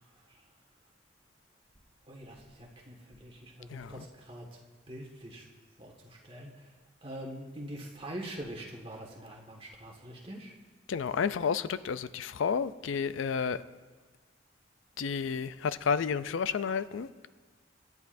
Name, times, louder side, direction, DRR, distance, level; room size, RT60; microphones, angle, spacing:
voice 1, 2.1-4.5 4.9-5.4 5.8-6.7 7.0-10.5, right 1 dB, 30° right, -1 dB, 1.7 m, -44 dB
voice 2, 3.7-4.0 10.9-13.6 15.0-17.1, left 6 dB, 80° left, 14 dB, 0.4 m, -31 dB
25.0 x 9.6 x 2.6 m, 1.4 s
head